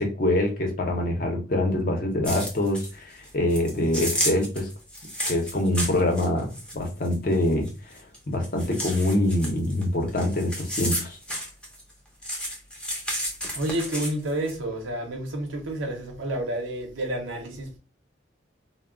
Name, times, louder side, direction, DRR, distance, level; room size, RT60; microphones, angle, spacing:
voice 1, 0.0-4.7 5.3-8.0 8.3-11.2, left 1 dB, 45° left, 0.6 m, -25 dB
sound 1, 2.2-2.9 3.2-8.2 8.4-11.9 12.2-14.6, equal, 5° left, 0.5 m, -32 dB
voice 2, 13.5-17.8, right 1 dB, 90° right, 0.7 m, -30 dB
2.2 x 2.0 x 3.6 m
head